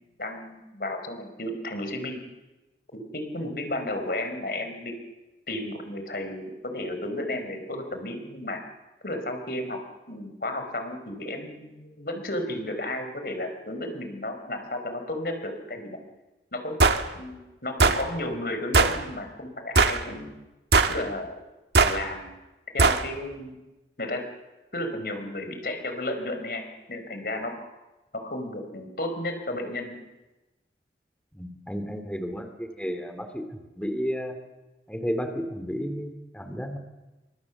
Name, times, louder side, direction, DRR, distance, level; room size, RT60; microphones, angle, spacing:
voice 1, 0.0-2.2 2.9-4.9 5.5-8.6 9.0-9.8 10.1-15.9 16.5-20.3 20.9-21.3 21.8-22.3 22.7-23.6 24.0-24.2 24.7-27.6 28.1-30.0, left 1 dB, 55° left, 6 dB, 4.8 m, -33 dB
sound 1, 16.8-17.0 17.8-18.0 18.7-19.0 19.8-20.0 20.7-21.0 21.7-22.0 22.8-23.0, right 3 dB, 75° right, 1.6 m, -19 dB
voice 2, 31.3-33.5 33.8-34.4 34.9-36.8, equal, 5° left, 6 dB, 2.7 m, -32 dB
29.5 x 25.0 x 7.3 m, 1.1 s
head